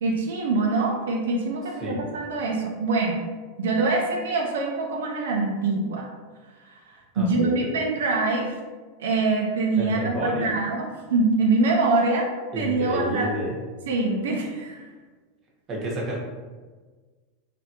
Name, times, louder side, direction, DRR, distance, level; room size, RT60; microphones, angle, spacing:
voice 1, 0.0-3.2 3.6-6.1 6.7-6.8 7.2-8.6 9.0-12.3 12.5-13.3 13.9-14.8, right 3 dB, 90° right, 0 dB, 0.4 m, -24 dB
voice 2, 7.1-7.7 9.8-10.5 12.5-13.6 15.7-16.2, right 1 dB, 30° right, -3 dB, 0.9 m, -29 dB
3.2 x 2.1 x 2.8 m, 1.4 s
supercardioid pair, 130°, 0 cm